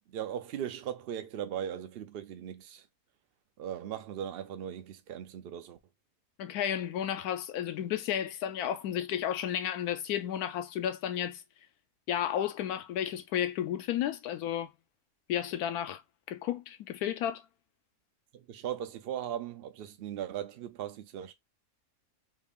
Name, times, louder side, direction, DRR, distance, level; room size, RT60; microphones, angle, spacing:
voice 1, 0.1-2.9 3.6-5.8 18.3-21.3, right 10 dB, 80° right, 0.5 m, -38 dB
voice 2, 6.4-11.4 12.1-14.7 15.3-16.0 16.3-17.4, left 10 dB, 85° left, 1.1 m, -32 dB
3.2 x 2.4 x 3.5 m
omnidirectional pair, 1.6 m